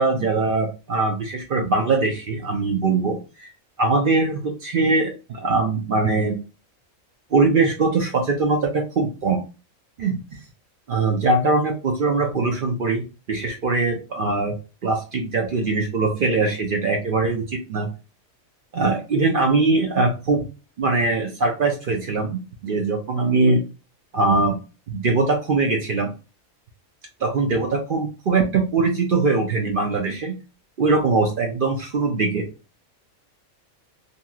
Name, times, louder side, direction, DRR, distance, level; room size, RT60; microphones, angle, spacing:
voice 1, 0.0-3.5 3.8-6.4 7.3-9.4 10.0-10.2 10.9-14.5 14.8-17.9 18.7-20.5 20.8-23.6 24.1-24.5 24.9-26.1 27.2-30.4 30.8-32.5, right 3 dB, 60° right, 2 dB, 0.5 m, -21 dB
2.9 x 2.6 x 2.3 m, 0.31 s
omnidirectional pair, 1.4 m